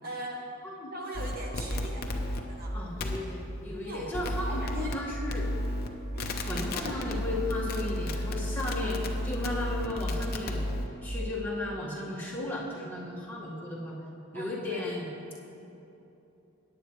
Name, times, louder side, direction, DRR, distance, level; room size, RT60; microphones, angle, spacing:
voice 1, 0.0-0.4 0.9-2.1 2.5-2.8 3.8-4.9 6.1-7.0 14.3-14.9, right 1 dB, 45° right, 0 dB, 1.0 m, -41 dB
sound 1, 1.1-2.4 3.0-3.2 4.1-4.9 5.3-5.9 6.2-10.9, left 1 dB, 45° left, 0.8 m, -32 dB
voice 2, 2.7-5.5 6.5-9.0 9.2-10.7 11.0-14.0 14.3-15.1, left 1 dB, 10° left, -7 dB, 1.8 m, -35 dB
17.5 x 9.6 x 3.2 m, 2.9 s
head